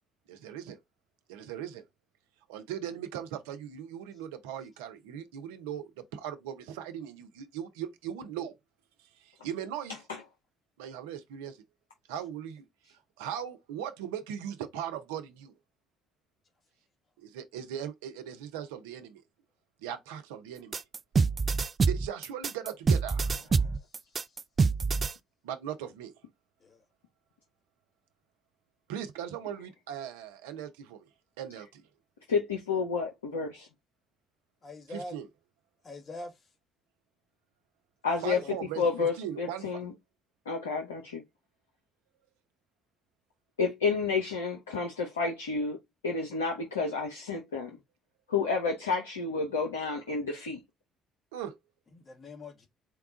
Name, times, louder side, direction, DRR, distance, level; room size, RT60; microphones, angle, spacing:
voice 1, 0.3-0.8 1.3-1.8 2.5-8.6 9.4-9.9 10.8-11.6 12.1-12.6 13.2-15.5 17.2-19.2 19.8-20.8 21.8-23.4 25.4-26.1 28.9-31.0 31.4-31.8 34.9-35.3 38.2-39.8 51.3-51.5, right 9 dB, 75° right, 0.6 m, -39 dB
sound 1, 20.7-25.1, right 4 dB, 40° right, 0.3 m, -26 dB
voice 2, 32.3-33.7 38.0-38.4 38.8-39.9 40.5-41.2 43.6-45.8 46.0-47.8 48.3-50.6, left 4 dB, 85° left, 0.6 m, -30 dB
voice 3, 34.6-35.1 35.8-36.3 38.4-38.5 51.9-52.7, left 2 dB, 40° left, 1.5 m, -43 dB
4.5 x 2.3 x 3.7 m
hypercardioid pair, 50°, 0 cm